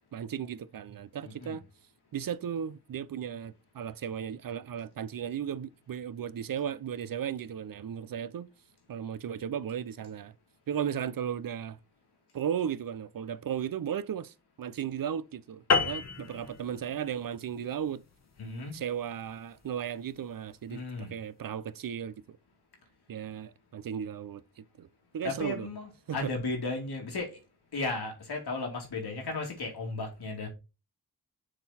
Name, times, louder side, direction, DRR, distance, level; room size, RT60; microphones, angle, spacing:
voice 1, 0.1-1.6 2.1-8.5 8.9-10.3 10.7-11.8 12.3-18.0 18.7-22.4 23.1-24.9 25.1-25.7 26.1-26.3, right 8 dB, 65° right, 0.6 m, -35 dB
sound 1, 15.7-20.4, left 4 dB, 45° left, 1.1 m, -32 dB
voice 2, 18.4-18.8 20.7-21.2 25.2-27.4 27.7-30.5, left 3 dB, 85° left, 2.6 m, -35 dB
6.6 x 3.9 x 4.1 m
wide cardioid pair, 85°, 38 cm